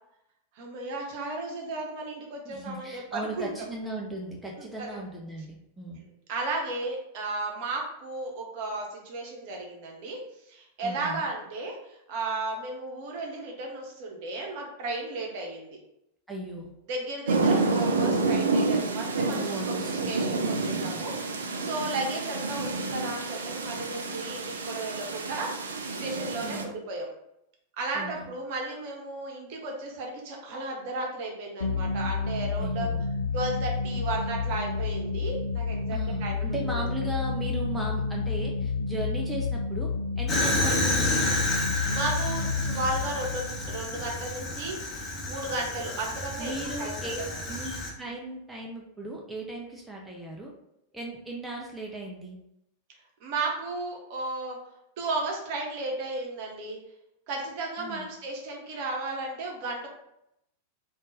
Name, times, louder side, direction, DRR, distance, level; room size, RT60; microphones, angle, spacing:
voice 1, 0.5-3.5 4.6-4.9 6.3-10.2 10.5-15.8 16.9-19.6 20.1-27.1 27.8-32.9 33.3-36.8 40.4-40.5 41.8-46.5 46.8-47.3 53.2-54.6 55.0-56.8 57.3-59.9, right 2 dB, 50° right, 0 dB, 0.9 m, -34 dB
voice 2, 2.4-6.0 10.8-11.3 16.3-16.7 19.4-20.2 26.4-26.8 27.9-28.3 32.6-33.1 35.9-39.9 40.2-41.2 46.4-47.2 47.5-50.5 50.9-52.4 57.8-58.1, right 2 dB, 5° right, -2 dB, 0.6 m, -37 dB
sound 1, 17.3-26.6, right 3 dB, 70° right, 0.4 m, -29 dB
sound 2, 31.6-44.9, left 4 dB, 75° left, 0.4 m, -30 dB
Fire, 40.3-47.9, left 1 dB, 20° left, 1.0 m, -30 dB
3.7 x 2.5 x 3.9 m, 0.81 s
figure-of-eight pair, 90°, 0 cm